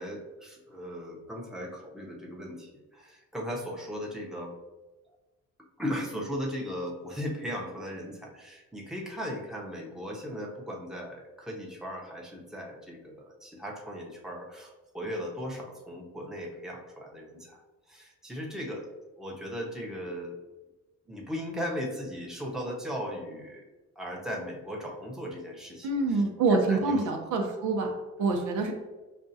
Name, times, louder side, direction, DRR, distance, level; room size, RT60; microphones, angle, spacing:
voice 1, 0.0-4.5 5.8-17.6 17.9-18.9 19.2-20.4 21.1-23.6 24.0-26.2 26.5-27.1, equal, ahead, -1 dB, 0.8 m, -37 dB
voice 2, 25.8-27.9 28.2-28.7, right 3 dB, 80° right, 2 dB, 0.8 m, -26 dB
5.2 x 2.4 x 2.7 m, 1.1 s
cardioid pair, 90°, 30 cm